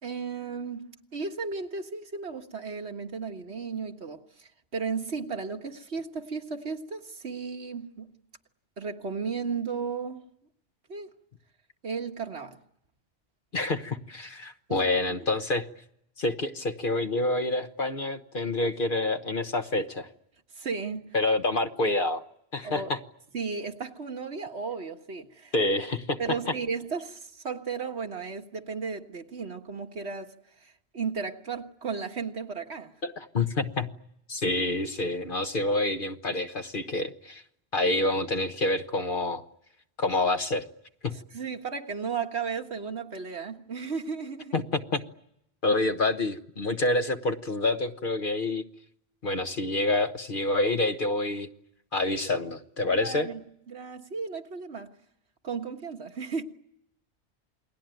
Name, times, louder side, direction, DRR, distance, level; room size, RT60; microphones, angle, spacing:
voice 1, 0.0-8.1 8.8-10.2 10.9-11.1 11.8-12.6 14.7-14.9 20.6-21.1 22.6-22.9 23.3-25.5 26.2-30.3 30.6-32.9 41.3-44.6 52.9-54.9 55.4-56.4, right 5 dB, 80° right, 1.9 m, -34 dB
voice 2, 13.5-15.7 16.2-20.1 21.1-22.2 22.5-23.0 25.5-26.4 33.0-33.9 34.3-37.4 37.7-39.4 40.0-40.6 41.0-41.2 44.5-45.0 45.6-48.6 49.2-51.5 51.9-53.3, left 2 dB, 50° left, 1.4 m, -27 dB
28.5 x 21.0 x 9.2 m
omnidirectional pair, 1.1 m